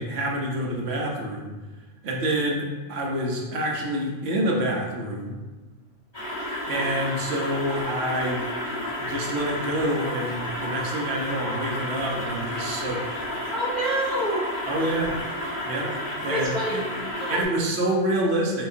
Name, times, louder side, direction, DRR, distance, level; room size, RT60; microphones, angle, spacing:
voice 1, 0.0-1.5 2.0-5.3 6.7-8.4 9.0-13.0 14.7-15.1 15.6-15.9 16.2-16.8 17.3-18.7, right 1 dB, 65° right, -1 dB, 1.0 m, -27 dB
sound 1, 6.1-17.4, left 1 dB, 20° left, 1.5 m, -31 dB
voice 2, 13.5-14.9 16.3-16.8 17.2-17.4, right 1 dB, ahead, -6 dB, 0.5 m, -28 dB
5.8 x 2.6 x 2.7 m, 1.2 s
omnidirectional pair, 1.2 m